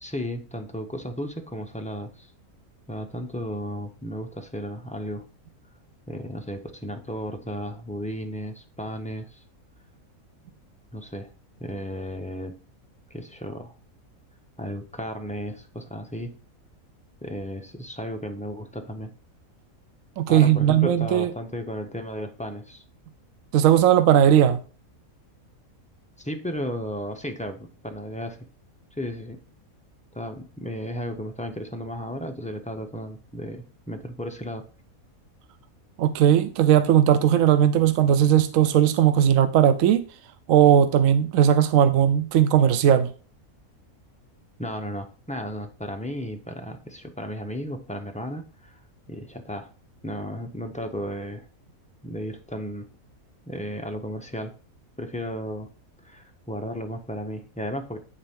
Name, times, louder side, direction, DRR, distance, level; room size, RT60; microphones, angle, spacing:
voice 1, 0.0-2.3 2.9-5.2 6.1-9.4 10.9-11.3 11.6-12.6 13.1-13.8 14.6-16.3 17.2-19.1 20.3-22.8 26.2-28.4 29.0-29.4 30.1-34.7 44.6-48.8 49.1-49.7 50.0-51.5 52.0-52.9 53.5-54.5 55.0-55.7 56.0-58.0, equal, 10° left, 0.4 m, -34 dB
voice 2, 20.2-21.3 23.5-24.6 36.0-40.0 40.5-43.1, right 10 dB, 70° right, 1.0 m, -18 dB
9.9 x 4.3 x 3.6 m
omnidirectional pair, 1.5 m